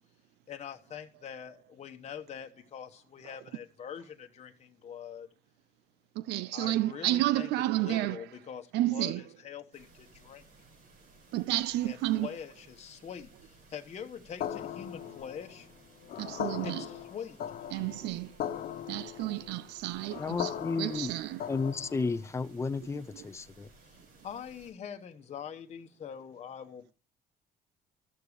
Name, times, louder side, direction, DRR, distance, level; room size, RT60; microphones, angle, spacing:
voice 1, 0.5-5.3 6.5-7.5 7.7-10.4 11.8-15.7 16.6-17.4 23.8-24.0 24.2-26.9, left 8 dB, 40° left, 1.1 m, -44 dB
voice 2, 6.1-8.5 8.7-9.2 11.3-12.5 15.0-15.1 16.2-16.9 17.7-18.3 18.9-21.5 23.1-23.3 26.5-26.6, right 15 dB, 85° right, 0.6 m, -31 dB
sound 1, 9.7-24.7, right 3 dB, 70° right, 6.3 m, -59 dB
sound 2, 14.4-22.2, left 10 dB, 60° left, 1.1 m, -39 dB
voice 3, 20.2-21.1 21.5-23.7, left 4 dB, 15° left, 0.6 m, -33 dB
13.5 x 6.8 x 4.9 m
cardioid pair, 110°, 17 cm